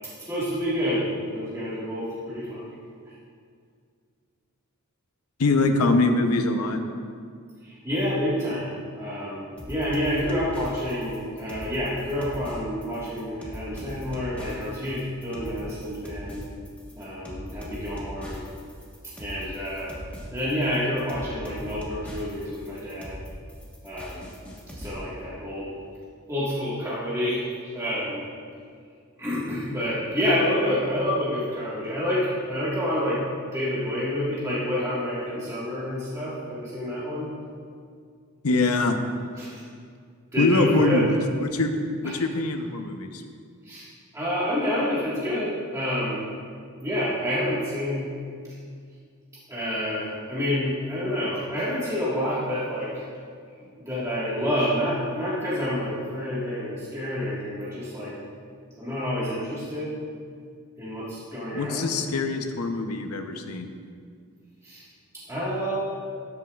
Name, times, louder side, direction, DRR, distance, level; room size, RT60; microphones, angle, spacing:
voice 1, 0.3-2.6 7.6-16.4 16.9-18.4 19.2-19.9 20.3-23.2 23.8-24.2 24.8-25.7 26.3-27.5 27.7-28.2 29.2-33.2 33.5-37.3 39.4-39.6 40.3-41.0 42.0-42.2 43.6-43.9 44.1-46.2 46.8-48.1 49.5-53.1 53.8-58.1 58.8-59.9 60.8-61.9 64.6-64.8 65.1-65.8, left 1 dB, 15° right, -9 dB, 1.6 m, -28 dB
voice 2, 5.4-6.8 38.4-39.0 40.4-41.0 41.4-41.7 42.0-43.2 61.5-63.7, left 3 dB, 80° left, 6 dB, 0.7 m, -23 dB
sound 1, 9.6-24.9, equal, 5° left, 1.3 m, -40 dB
13.0 x 8.2 x 2.4 m, 2.2 s
head